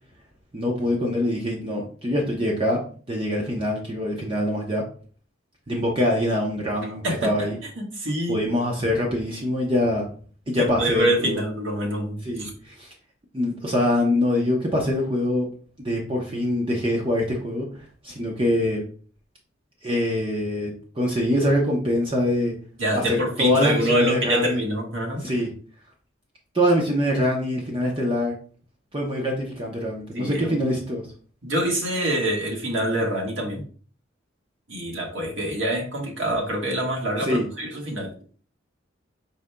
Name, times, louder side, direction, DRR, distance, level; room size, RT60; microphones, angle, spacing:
voice 1, 0.5-2.8 3.1-4.8 5.7-7.6 8.3-10.1 10.5-11.4 12.2-12.9 13.3-15.5 15.8-17.7 18.0-18.8 19.8-22.5 22.9-24.6 25.2-25.5 26.5-28.3 28.9-31.0 37.2-37.4, left 1 dB, 25° right, -1 dB, 0.8 m, -24 dB
voice 2, 6.8-8.4 10.5-12.5 22.8-25.2 30.1-30.6 31.4-33.6 34.7-38.1, right 1 dB, 75° right, 0 dB, 1.5 m, -26 dB
5.0 x 4.1 x 2.2 m, 0.42 s
head